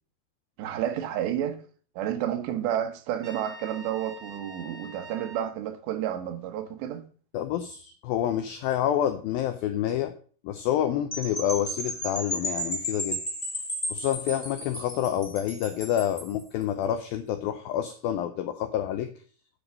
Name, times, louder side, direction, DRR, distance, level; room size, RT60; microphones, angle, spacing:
voice 1, 0.6-1.6 2.0-7.0, right 10 dB, 80° right, 3.1 m, -30 dB
Trumpet, 3.2-5.5, equal, 25° right, 1.7 m, -45 dB
voice 2, 7.3-10.1 10.4-13.2 13.9-19.1, left 11 dB, 85° left, 2.1 m, -28 dB
sound 1, 11.1-16.4, equal, 10° left, 1.8 m, -33 dB
9.8 x 5.1 x 6.2 m
omnidirectional pair, 5.0 m